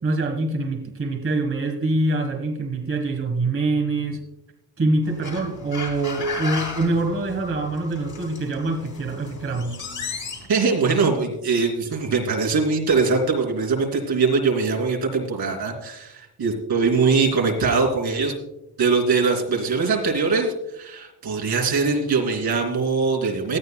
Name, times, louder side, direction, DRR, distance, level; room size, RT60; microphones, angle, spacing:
voice 1, 0.0-4.2 4.8-9.8, right 2 dB, 35° right, 3 dB, 1.4 m, -24 dB
sound 1, 5.0-10.5, left 4 dB, 50° left, 3.2 m, -35 dB
voice 2, 10.5-18.3 18.8-23.6, right 4 dB, 75° right, 2 dB, 2.9 m, -22 dB
18.0 x 12.5 x 2.3 m, 0.87 s
wide cardioid pair, 165°, 38 cm